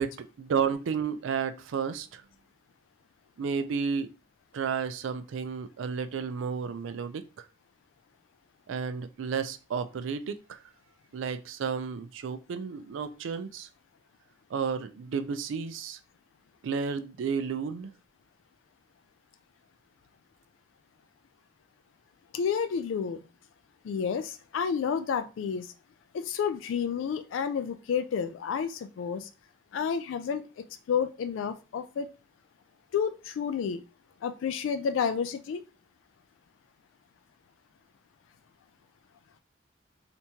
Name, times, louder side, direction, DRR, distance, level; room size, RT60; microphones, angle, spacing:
voice 1, 0.0-2.2 3.4-4.1 4.5-7.2 8.7-10.6 11.1-13.7 14.5-16.0 16.6-17.9, right 6 dB, 80° right, 0.4 m, -32 dB
voice 2, 22.3-23.2 23.8-25.7 26.1-29.3 29.7-30.5 30.9-32.1 32.9-33.8 34.2-35.6, left 6 dB, 85° left, 0.3 m, -30 dB
3.4 x 2.9 x 2.8 m
head